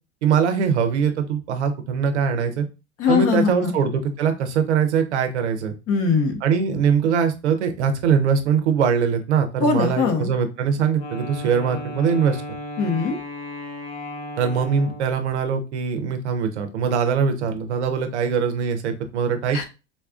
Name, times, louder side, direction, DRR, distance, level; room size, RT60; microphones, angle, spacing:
voice 1, 0.2-2.6 3.1-5.7 6.4-12.4 14.4-19.6, right 6 dB, 80° right, 6 dB, 0.7 m, -22 dB
voice 2, 3.0-3.7 5.9-6.4 9.6-10.3 12.8-13.2 19.5-19.6, left 5 dB, 40° left, 5 dB, 1.0 m, -21 dB
Wind instrument woodwind instrument, 10.9-15.3, left 1 dB, 60° left, 1.3 m, -35 dB
4.1 x 2.3 x 2.4 m, 0.29 s
hypercardioid pair, 90°, 33 cm